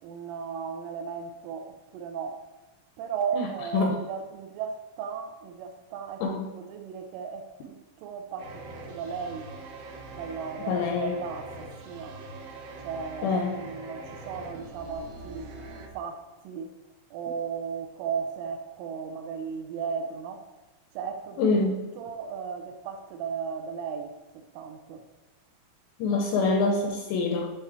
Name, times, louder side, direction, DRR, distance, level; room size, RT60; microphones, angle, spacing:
voice 1, 0.0-2.5 3.0-9.5 10.1-12.2 12.8-15.5 15.9-16.7 17.1-20.5 20.9-21.5 22.0-25.0, right 6 dB, 90° right, 3.3 m, -36 dB
sound 1, 8.4-15.9, right 2 dB, 70° right, 2.2 m, -42 dB
voice 2, 10.7-11.2 13.2-13.6 21.4-21.8 26.0-27.5, left 3 dB, 80° left, 2.6 m, -25 dB
10.5 x 3.7 x 7.0 m
omnidirectional pair, 5.8 m